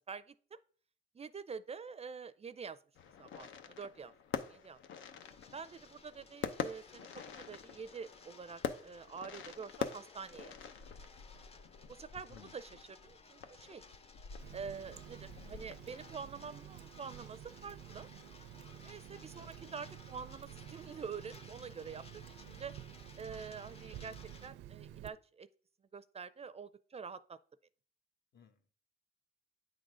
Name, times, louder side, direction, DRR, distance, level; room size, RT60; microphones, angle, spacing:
voice 1, 0.1-0.6 1.1-2.8 3.2-4.1 4.5-4.8 5.5-10.5 11.9-13.8 14.5-18.1 18.8-22.7 23.2-24.2 24.4-25.5 25.9-27.4, right 5 dB, 30° right, 0.5 m, -46 dB
sound 1, 2.9-16.2, left 7 dB, 75° left, 0.8 m, -45 dB
sound 2, 5.2-24.5, left 4 dB, 30° left, 0.8 m, -59 dB
Water tap faucet, 14.4-25.1, right 11 dB, 85° right, 0.5 m, -51 dB
voice 2, 28.3-28.7, left 7 dB, 55° left, 1.3 m, -60 dB
9.1 x 3.9 x 4.9 m
cardioid pair, 90°, 20 cm